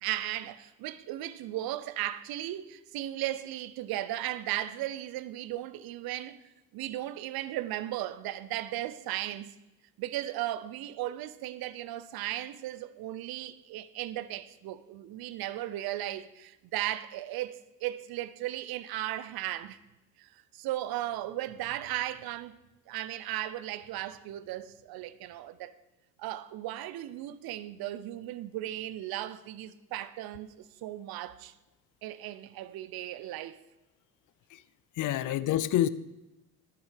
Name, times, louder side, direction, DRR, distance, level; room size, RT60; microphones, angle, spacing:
voice 1, 0.0-6.4 6.7-9.5 10.0-19.8 20.2-22.5 22.9-25.7 26.2-31.5 32.0-33.6, right 14 dB, 55° right, 0.8 m, -36 dB
voice 2, 34.9-35.9, left 12 dB, 45° left, 0.7 m, -27 dB
11.5 x 6.9 x 6.6 m
hypercardioid pair, 55°, 45 cm